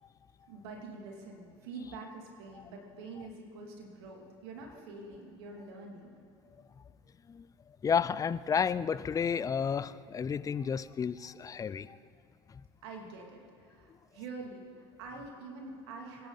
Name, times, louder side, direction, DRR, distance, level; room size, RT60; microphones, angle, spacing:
voice 1, 0.5-6.2 12.8-16.3, right 3 dB, 75° right, 1 dB, 2.8 m, -46 dB
voice 2, 7.8-12.0 12.5-12.6, left 7 dB, 25° left, 16 dB, 0.5 m, -31 dB
24.0 x 10.5 x 4.1 m, 2.4 s
hypercardioid pair, 80°, 14 cm